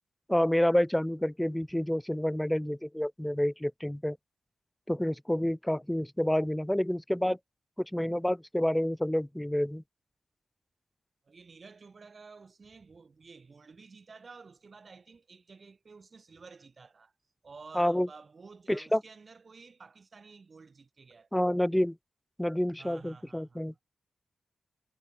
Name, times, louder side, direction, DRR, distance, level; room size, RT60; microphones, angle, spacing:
voice 1, 0.3-4.2 4.9-7.4 7.8-9.8 17.8-18.1 18.7-19.0 21.3-22.0 22.4-23.7, left 1 dB, 5° left, 0.4 m, -28 dB
voice 2, 11.2-17.1 17.4-21.4 22.8-23.6, right 4 dB, 35° right, 2.5 m, -52 dB
wide cardioid pair, 150°, 0 cm